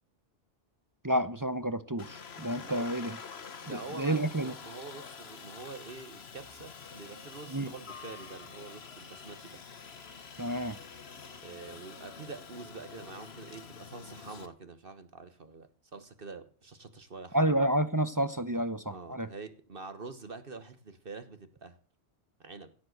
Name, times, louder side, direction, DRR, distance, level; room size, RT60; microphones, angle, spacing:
voice 1, 1.0-3.2 3.7-4.5 7.5-7.7 10.4-10.8 17.3-19.3, right 1 dB, 20° right, 0.6 m, -30 dB
Aircraft, 2.0-14.5, left 6 dB, 60° left, 1.4 m, -47 dB
voice 2, 2.5-3.0 3.6-9.6 11.4-17.6 18.9-21.8 22.4-22.7, right 4 dB, 50° right, 1.4 m, -46 dB
16.5 x 7.6 x 7.8 m
omnidirectional pair, 1.2 m